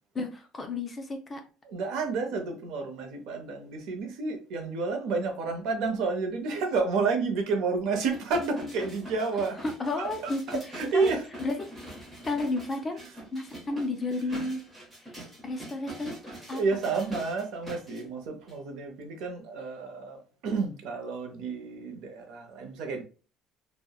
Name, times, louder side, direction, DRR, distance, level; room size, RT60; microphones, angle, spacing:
voice 1, 0.1-1.4 9.8-10.6 10.9-11.1 11.4-11.7 12.2-13.0 13.3-14.6 15.4-16.2 16.5-16.6, left 2 dB, 20° left, 0.4 m, -32 dB
voice 2, 1.6-9.6 10.0-11.5 12.9-13.3 14.1-14.5 16.3-23.0, right 4 dB, 65° right, 0.6 m, -31 dB
sound 1, 8.1-18.0 18.5-18.6, equal, 10° right, 0.8 m, -44 dB
2.7 x 2.0 x 2.2 m
cardioid pair, 165°, 0 cm